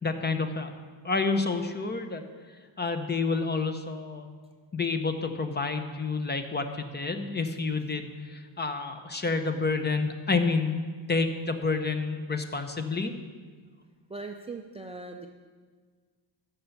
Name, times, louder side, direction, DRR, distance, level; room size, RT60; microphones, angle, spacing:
voice 1, 0.0-0.7 1.0-2.2 2.8-4.3 4.7-13.1, left 4 dB, 20° left, 7 dB, 0.7 m, -29 dB
voice 2, 2.5-2.9 14.1-15.3, right 3 dB, 15° right, 3 dB, 0.4 m, -41 dB
13.5 x 5.4 x 7.0 m, 1.5 s
cardioid pair, 145°, 48 cm